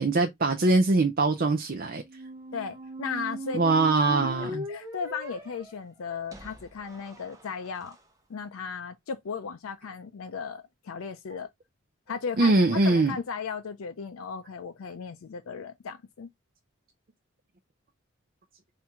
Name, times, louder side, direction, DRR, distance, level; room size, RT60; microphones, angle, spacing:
voice 1, 0.0-2.0 3.5-4.7 12.4-13.2, right 3 dB, 45° right, 0.5 m, -22 dB
sound 1, 2.0-7.9, right 1 dB, 15° right, 0.8 m, -40 dB
voice 2, 2.5-3.6 4.0-8.0 8.3-11.5 12.1-12.5 12.8-16.3, left 6 dB, 80° left, 0.4 m, -36 dB
4.4 x 2.7 x 3.5 m
head